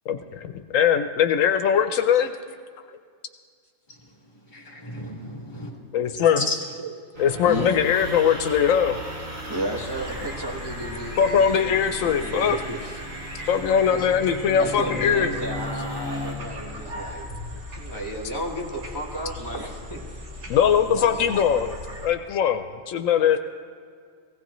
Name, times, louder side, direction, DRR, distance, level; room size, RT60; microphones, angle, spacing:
voice 1, 0.1-2.3 5.9-6.4 7.2-9.0 11.2-12.6 13.5-15.3 20.5-23.4, left 8 dB, 80° left, 8 dB, 1.0 m, -21 dB
voice 2, 3.9-6.9, left 1 dB, 35° left, -2 dB, 2.2 m, -34 dB
sound 1, 7.1-16.3, equal, 90° right, 2.6 m, -36 dB
voice 3, 9.5-13.0 13.9-14.1 14.6-17.3 17.7-20.0 20.8-21.2, right 1 dB, 20° right, -3 dB, 1.3 m, -33 dB
sound 2, 9.9-22.1, left 1 dB, 65° right, 1.8 m, -39 dB
17.5 x 16.0 x 3.1 m, 2.1 s
omnidirectional pair, 1.3 m